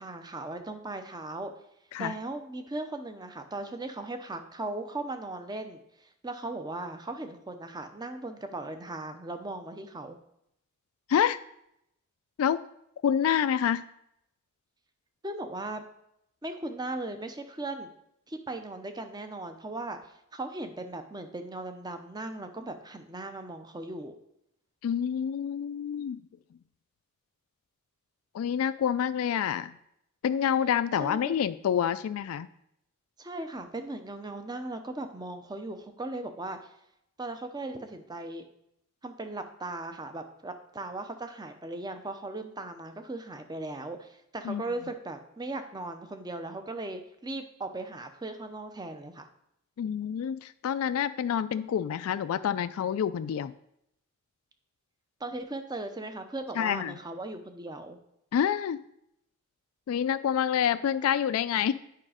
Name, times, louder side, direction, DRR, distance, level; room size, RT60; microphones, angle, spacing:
voice 1, 0.0-1.5 2.0-10.2 15.2-15.8 16.4-17.9 18.3-24.2 31.0-31.4 33.2-36.7 37.2-38.4 39.0-49.3 55.2-58.0, right 2 dB, 20° right, 7 dB, 0.7 m, -38 dB
voice 2, 13.0-13.8 24.8-26.2 28.3-29.7 30.2-32.5 44.4-44.6 49.8-53.5 56.6-56.9 58.3-58.8 59.9-61.7, left 8 dB, 80° left, 14 dB, 0.3 m, -27 dB
8.5 x 4.9 x 5.0 m, 0.78 s
head